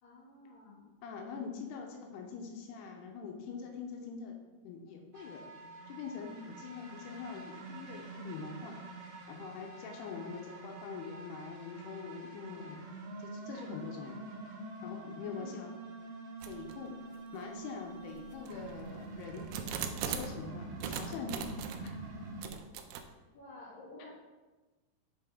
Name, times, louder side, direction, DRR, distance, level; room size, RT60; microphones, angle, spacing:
voice 1, 0.0-0.9 15.3-15.6 23.3-24.1, left 2 dB, 35° left, -8 dB, 2.7 m, -51 dB
voice 2, 1.0-4.4 4.6-5.5 5.9-8.7 9.3-12.8 13.2-14.3 14.8-15.7 16.5-16.9 17.3-19.5 20.0-21.5 21.8-22.0, left 5 dB, 85° left, 2 dB, 2.7 m, -44 dB
sound 1, 5.1-22.4, right 2 dB, 70° right, 2.2 m, -46 dB
sound 2, 16.4-16.8 17.4-17.5 18.2-20.4 20.8-21.9 22.4-23.0, right 7 dB, 85° right, 2.6 m, -40 dB
7.5 x 4.9 x 3.6 m, 1.2 s
omnidirectional pair, 4.6 m